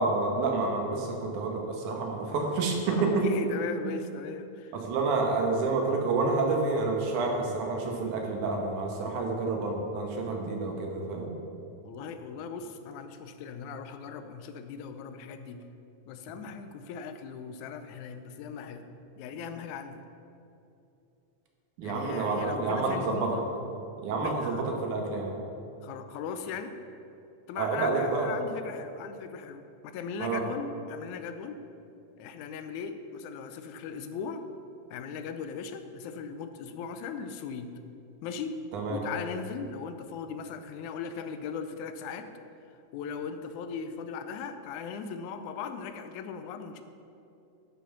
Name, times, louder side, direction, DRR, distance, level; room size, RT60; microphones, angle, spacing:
voice 1, 0.0-3.3 3.8-3.9 4.7-11.3 21.8-23.4 24.0-25.4 27.6-28.3 30.2-30.4 38.7-39.0, right 3 dB, 85° right, 1 dB, 2.7 m, -29 dB
voice 2, 2.9-4.8 11.8-15.6 16.1-18.9 19.2-20.0 21.8-23.5 24.2-24.7 25.8-26.7 27.5-31.6 32.2-34.4 34.9-37.7 38.2-38.6 38.9-42.3 42.9-46.8, left 6 dB, 85° left, 9 dB, 2.0 m, -38 dB
10.0 x 5.6 x 5.9 m, 2.8 s
omnidirectional pair, 3.4 m